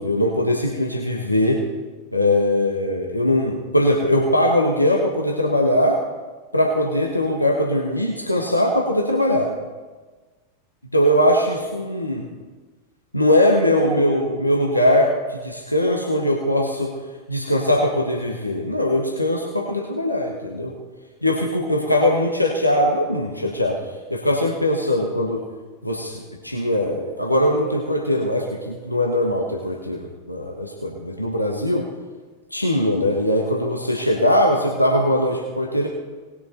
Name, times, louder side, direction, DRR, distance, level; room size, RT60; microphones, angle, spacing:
voice 1, 0.0-1.6 2.1-6.0 6.5-9.5 10.9-12.3 13.1-16.9 17.3-20.7 21.2-23.8 24.1-25.4 25.8-31.9 32.5-35.9, left 1 dB, 85° left, -1 dB, 1.3 m, -21 dB
19.0 x 7.2 x 4.4 m, 1.3 s
figure-of-eight pair, 90°, 0 cm